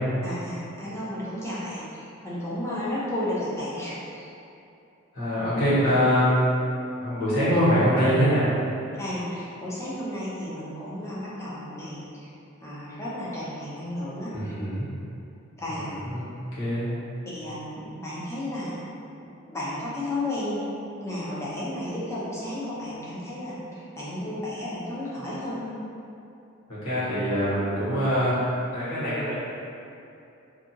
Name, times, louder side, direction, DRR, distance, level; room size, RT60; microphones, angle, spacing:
voice 1, 0.2-4.3 9.0-12.3 12.6-14.5 15.6-15.9 17.3-18.8 19.5-20.6 21.0-25.7, left 1 dB, 15° left, -8 dB, 0.5 m, -33 dB
voice 2, 5.1-6.5 6.9-8.5 14.3-14.9 15.7-16.2 16.6-16.9 26.7-29.3, equal, 85° left, -11 dB, 1.2 m, -24 dB
2.7 x 2.5 x 2.6 m, 2.7 s
head